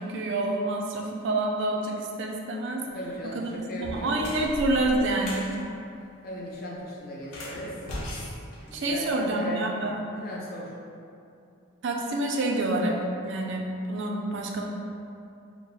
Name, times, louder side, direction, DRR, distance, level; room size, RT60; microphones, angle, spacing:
voice 1, 0.0-2.8 3.3-3.5 3.8-5.5 8.7-10.0 11.8-13.0 13.2-14.6, right 2 dB, 55° right, 0 dB, 0.4 m, -27 dB
sound 1, 2.9-3.2 3.7-5.5 7.2-9.3, left 1 dB, 80° left, 0.9 m, -38 dB
voice 2, 2.9-4.2 6.2-7.9 8.6-10.7, equal, 40° left, -3 dB, 0.6 m, -37 dB
4.5 x 2.2 x 4.0 m, 2.6 s
head